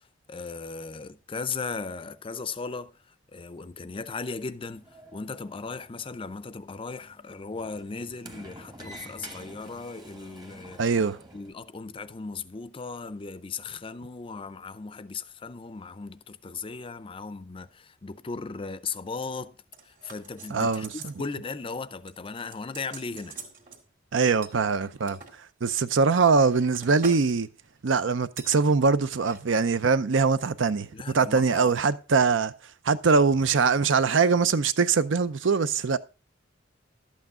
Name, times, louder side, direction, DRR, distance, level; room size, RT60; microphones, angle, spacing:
voice 1, 0.0-4.9 5.1-10.8 11.3-19.6 19.8-23.4 30.9-31.7, left 4 dB, 25° left, 0.5 m, -37 dB
Sliding door, 4.5-11.5, right 1 dB, 20° right, 1.1 m, -49 dB
voice 2, 10.8-11.2 20.5-21.1 24.1-25.2 25.6-27.5 27.8-32.5 32.8-36.0, right 4 dB, 70° right, 0.6 m, -22 dB
sound 1, 19.7-21.2 21.5-21.8 22.1-23.8 24.4-25.3 26.0-27.3 27.6-27.9 28.4-28.6 29.1-29.4 29.7-29.8, right 5 dB, 45° right, 2.0 m, -45 dB
12.0 x 8.4 x 3.7 m
head